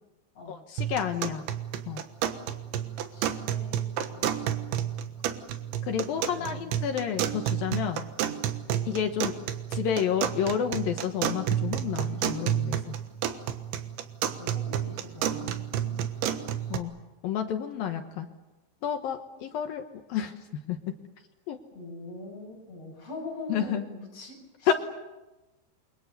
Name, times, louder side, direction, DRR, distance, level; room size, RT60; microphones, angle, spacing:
voice 1, 0.5-1.4 1.9-2.0 5.9-8.0 8.9-9.3 9.7-13.0 16.7-16.9 17.2-18.3 18.8-20.3 20.7-20.8 21.5-21.6 23.5-23.8 24.7-24.8, left 8 dB, 65° left, 6 dB, 2.5 m, -30 dB
sound 1, 0.8-16.8, right 10 dB, 85° right, 3.6 m, -31 dB
voice 2, 3.1-3.9 4.1-5.3 6.1-6.8 8.7-8.9 14.4-16.0 16.3-16.7 21.7-24.7, left 2 dB, 35° left, 0 dB, 8.3 m, -44 dB
29.0 x 24.5 x 6.8 m, 1.1 s
omnidirectional pair, 5.2 m